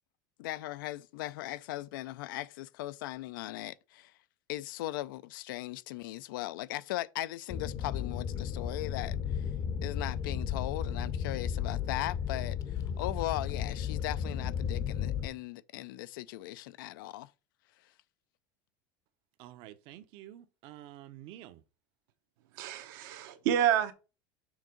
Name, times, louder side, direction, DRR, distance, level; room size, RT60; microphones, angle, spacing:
voice 1, 0.4-4.1 4.5-9.5 9.8-17.3, left 16 dB, 90° left, 0.5 m, -38 dB
sound 1, 7.5-15.3, left 8 dB, 35° left, 0.7 m, -34 dB
voice 2, 19.4-21.6, right 13 dB, 55° right, 0.8 m, -49 dB
voice 3, 22.5-23.9, right 10 dB, 75° right, 1.1 m, -28 dB
6.5 x 3.7 x 5.1 m
supercardioid pair, 145°, 11 cm